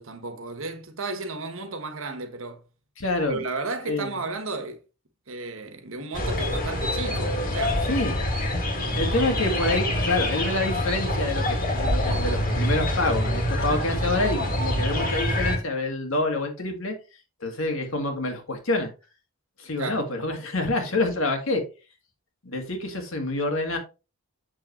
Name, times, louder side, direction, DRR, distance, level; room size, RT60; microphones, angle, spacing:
voice 1, 0.0-2.6 3.3-4.8 5.3-7.8 19.8-20.0, right 3 dB, 65° right, 1.4 m, -33 dB
voice 2, 3.0-3.5 3.9-4.1 7.9-8.1 9.0-16.9 17.4-18.9 19.6-21.6 22.4-23.8, left 2 dB, 65° left, 2.0 m, -27 dB
sound 1, 6.1-15.6, left 1 dB, 40° left, 2.0 m, -26 dB
7.8 x 6.3 x 3.0 m
head